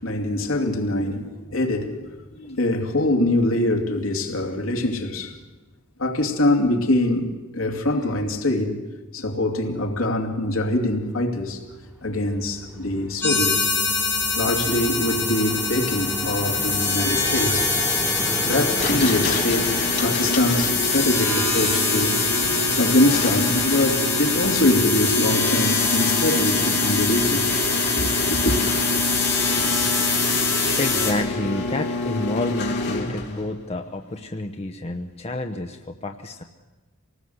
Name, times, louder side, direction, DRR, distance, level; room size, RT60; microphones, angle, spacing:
voice 1, 0.0-5.4 6.0-8.8 9.1-11.6 12.0-13.7 14.4-17.7 18.5-22.2 22.8-27.5 28.0-28.6, left 1 dB, 70° left, 2.7 m, -23 dB
Vehicle, 11.5-26.2, equal, 15° right, 3.5 m, -35 dB
sound 1, 13.2-31.1, left 3 dB, 10° left, 6.2 m, -24 dB
sound 2, 18.8-33.4, left 2 dB, 50° left, 3.0 m, -27 dB
voice 2, 30.8-36.4, left 2 dB, 30° left, 0.9 m, -29 dB
25.0 x 19.0 x 8.0 m
head